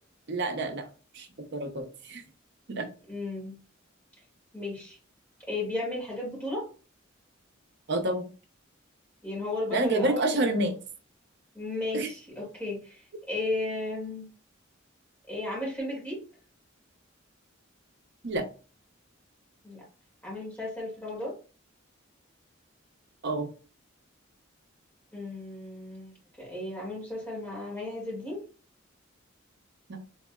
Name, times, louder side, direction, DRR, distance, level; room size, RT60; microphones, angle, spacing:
voice 1, 0.3-0.9 1.1-1.3 1.5-2.2 2.7-2.9 7.9-8.3 9.7-10.8 11.9-12.1 18.2-18.5 23.2-23.5 29.9-30.0, right 2 dB, 60° right, 6 dB, 0.7 m, -28 dB
voice 2, 3.1-3.6 4.5-5.0 5.5-6.7 9.2-10.7 11.5-14.3 15.3-16.2 19.6-19.8 20.2-21.4 25.1-28.4, left 2 dB, 10° left, -3 dB, 1.9 m, -34 dB
3.6 x 3.3 x 2.3 m, 0.35 s
head